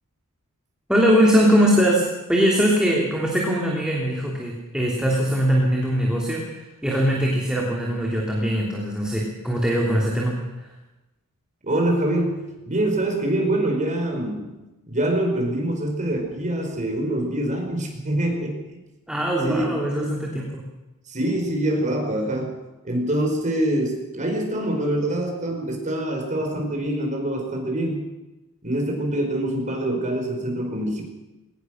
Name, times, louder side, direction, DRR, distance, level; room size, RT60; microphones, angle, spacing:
voice 1, 0.9-2.0 2.3-10.7 19.1-20.6, equal, 5° right, -2 dB, 2.9 m, -21 dB
voice 2, 11.6-14.5 14.9-18.6 19.4-20.2 21.1-22.5 22.8-28.0 28.6-31.0, right 1 dB, 35° right, 2 dB, 5.0 m, -25 dB
21.5 x 19.0 x 6.4 m, 1.0 s
head